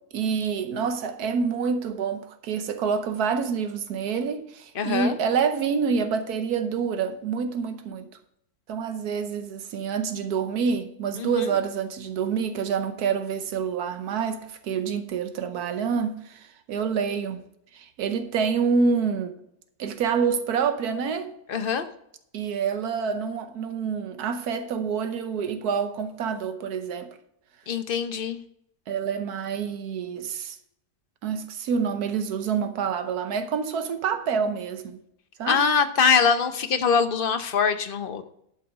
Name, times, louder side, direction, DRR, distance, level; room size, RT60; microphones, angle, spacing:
voice 1, 0.1-8.1 8.7-17.4 17.7-19.3 19.8-21.3 22.3-27.1 28.9-30.6 31.2-35.0 35.4-35.6, right 6 dB, 85° right, 1.4 m, -27 dB
voice 2, 4.7-5.1 11.2-11.4 21.5-21.9 27.7-28.4 35.5-38.2, left 6 dB, 45° left, 0.8 m, -23 dB
11.5 x 6.2 x 4.7 m
omnidirectional pair, 1.6 m